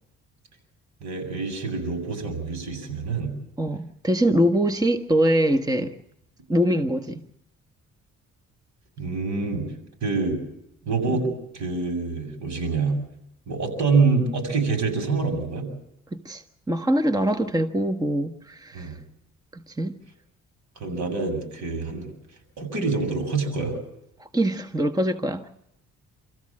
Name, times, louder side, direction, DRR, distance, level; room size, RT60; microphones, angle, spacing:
voice 1, 1.0-3.3 9.0-9.6 10.0-10.4 10.8-12.9 13.5-15.7 18.7-19.0 20.8-22.1 22.6-23.8, right 4 dB, 65° right, 7.8 m, -26 dB
voice 2, 3.6-5.9 6.5-7.2 11.1-11.3 16.1-19.0 19.5-20.0 24.2-25.5, right 1 dB, 10° right, 1.4 m, -23 dB
28.5 x 14.5 x 7.6 m
cardioid pair, 90°, 30 cm